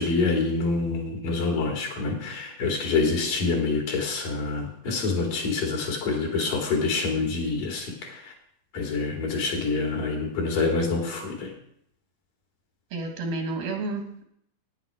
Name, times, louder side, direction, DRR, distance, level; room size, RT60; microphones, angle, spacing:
voice 1, 0.0-8.3 8.7-11.5, left 3 dB, 65° left, 0 dB, 4.2 m, -26 dB
voice 2, 12.9-14.2, right 2 dB, 85° right, 3 dB, 3.7 m, -31 dB
12.0 x 9.9 x 5.0 m, 0.70 s
omnidirectional pair, 4.2 m